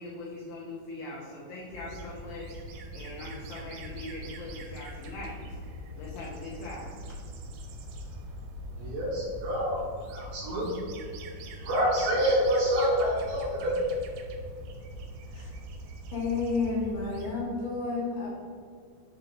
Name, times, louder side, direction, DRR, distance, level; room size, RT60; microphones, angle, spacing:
voice 1, 0.0-7.1, left 2 dB, 85° left, -4 dB, 2.0 m, -42 dB
sound 1, 1.7-17.3, right 1 dB, 90° right, 2.9 m, -42 dB
voice 2, 8.8-9.8 10.1-10.7 11.6-13.8, equal, 75° right, -5 dB, 2.4 m, -27 dB
voice 3, 16.1-18.3, left 4 dB, 70° left, -5 dB, 2.6 m, -31 dB
6.6 x 2.9 x 5.2 m, 2.2 s
omnidirectional pair, 5.2 m